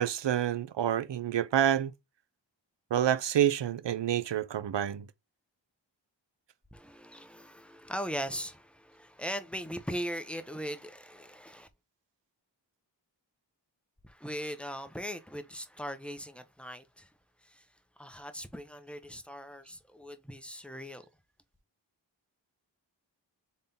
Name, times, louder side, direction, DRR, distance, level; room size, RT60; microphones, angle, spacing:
voice 1, 0.0-1.9 2.9-5.1, right 10 dB, 70° right, 0.6 m, -28 dB
voice 2, 6.7-11.7 14.0-17.1 17.4-17.6 18.0-21.1, equal, ahead, 0.9 m, -39 dB
4.1 x 3.7 x 3.5 m
cardioid pair, 45°, 45 cm